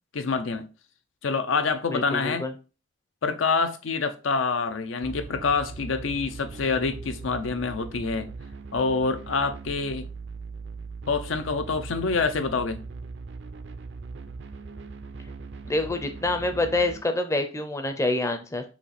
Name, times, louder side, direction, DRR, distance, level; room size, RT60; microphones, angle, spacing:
voice 1, 0.1-0.7 1.2-2.5 3.2-8.3 8.7-10.1 11.1-12.8, left 4 dB, 75° left, 0.6 m, -26 dB
voice 2, 1.9-2.5 15.7-18.6, left 2 dB, 15° left, 0.5 m, -26 dB
sound 1, 5.0-17.0, right 4 dB, 60° right, 0.4 m, -40 dB
4.2 x 2.9 x 4.1 m
head